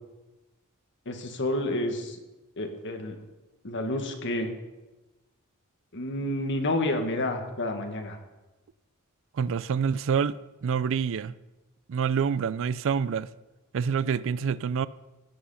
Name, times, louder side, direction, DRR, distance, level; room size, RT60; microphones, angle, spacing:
voice 1, 1.1-2.2 2.6-3.2 3.6-4.5 5.9-8.2, left 1 dB, 55° left, 1.7 m, -29 dB
voice 2, 9.4-11.3 11.9-13.3 13.7-14.9, right 6 dB, 65° right, 0.4 m, -27 dB
16.0 x 7.8 x 5.7 m
head